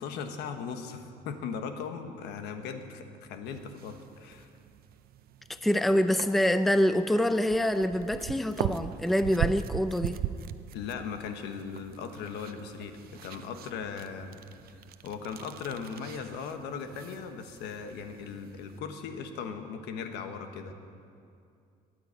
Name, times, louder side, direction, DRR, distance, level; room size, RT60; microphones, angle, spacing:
voice 1, 0.0-4.5 10.7-14.4 15.0-20.7, left 6 dB, 85° left, 7 dB, 1.2 m, -38 dB
sound 1, 3.5-18.8, right 10 dB, 65° right, 0.6 m, -40 dB
voice 2, 5.6-10.2, equal, ahead, 11 dB, 0.5 m, -25 dB
13.5 x 8.0 x 9.7 m, 2.4 s
cardioid pair, 110°, 17 cm